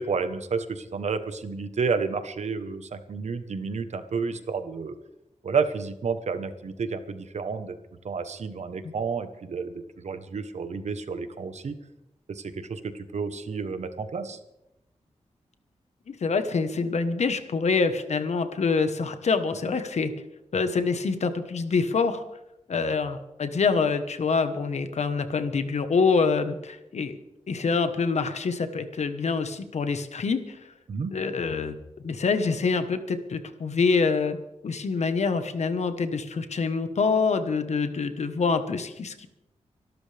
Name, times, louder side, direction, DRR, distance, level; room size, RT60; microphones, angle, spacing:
voice 1, 0.0-4.9 5.4-7.8 8.0-11.7 12.3-14.4 30.9-31.2, right 5 dB, 70° right, 10 dB, 1.2 m, -30 dB
voice 2, 16.1-20.1 20.5-22.2 22.7-27.2 27.5-30.6 31.1-31.7 32.0-34.4 34.6-39.3, left 4 dB, 65° left, 9 dB, 1.3 m, -26 dB
25.0 x 12.5 x 3.5 m, 0.90 s
wide cardioid pair, 175°, 12 cm